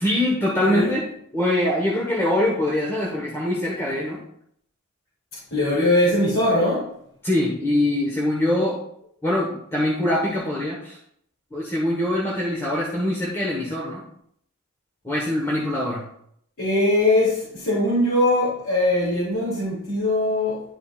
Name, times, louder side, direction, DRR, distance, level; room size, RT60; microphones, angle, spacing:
voice 1, 0.0-1.0 1.3-4.2 7.2-8.8 9.2-11.0 11.5-14.0 15.0-16.0, left 1 dB, 10° left, -5 dB, 1.3 m, -23 dB
voice 2, 5.5-6.9 16.6-20.6, left 1 dB, 70° left, -9 dB, 3.0 m, -21 dB
11.5 x 5.1 x 2.5 m, 0.69 s
head